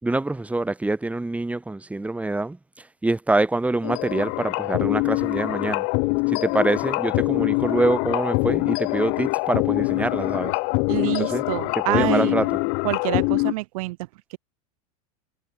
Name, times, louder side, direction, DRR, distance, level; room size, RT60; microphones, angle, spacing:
voice 1, 0.0-2.6 3.0-5.9 6.3-10.5 11.2-11.4 11.9-12.5, right 2 dB, 5° right, 4.7 m, -25 dB
sound 1, 3.8-13.5, left 38 dB, 55° left, 1.4 m, -24 dB
voice 2, 10.9-12.5 12.8-14.0 14.3-14.4, right 21 dB, 65° right, 2.6 m, -27 dB
supercardioid pair, 120°, 19 cm